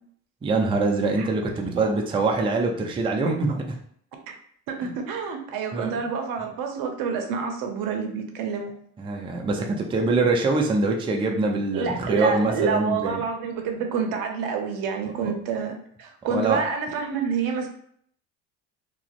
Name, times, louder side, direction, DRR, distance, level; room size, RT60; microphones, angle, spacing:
voice 1, 0.4-3.6 4.8-4.9 5.7-5.9 9.0-13.2 15.2-15.3 16.3-16.6, right 3 dB, 15° right, 1 dB, 0.4 m, -24 dB
voice 2, 4.7-8.8 11.7-17.7, right 5 dB, 60° right, 4 dB, 0.6 m, -28 dB
2.4 x 2.1 x 2.4 m, 0.64 s
hypercardioid pair, 70°, 39 cm